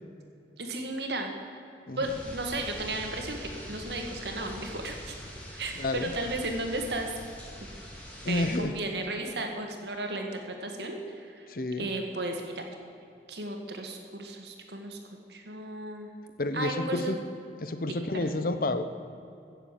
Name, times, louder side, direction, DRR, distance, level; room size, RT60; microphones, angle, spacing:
voice 1, 0.6-1.6 2.0-5.2 5.6-7.1 8.3-11.5 11.8-12.6 13.3-15.0 15.3-16.1 16.5-17.2 18.2-18.4, right 2 dB, 70° right, 3 dB, 1.9 m, -34 dB
sound 1, 2.0-8.6, equal, 10° left, 2.2 m, -43 dB
voice 2, 8.2-8.7 11.5-11.9 16.4-17.2 17.6-18.8, left 2 dB, 50° left, 10 dB, 0.8 m, -30 dB
16.0 x 7.2 x 7.4 m, 2.6 s
head